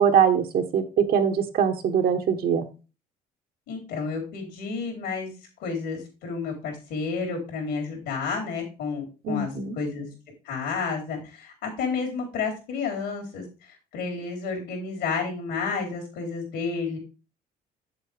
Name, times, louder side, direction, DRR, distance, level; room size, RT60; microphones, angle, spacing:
voice 1, 0.0-2.7 9.2-9.8, right 7 dB, 60° right, 6 dB, 1.2 m, -22 dB
voice 2, 3.7-5.3 5.6-9.5 9.8-10.1 10.5-13.4 13.9-17.0, left 5 dB, 85° left, 1 dB, 3.8 m, -31 dB
7.5 x 7.4 x 3.4 m, 0.31 s
cardioid pair, 110°, 17 cm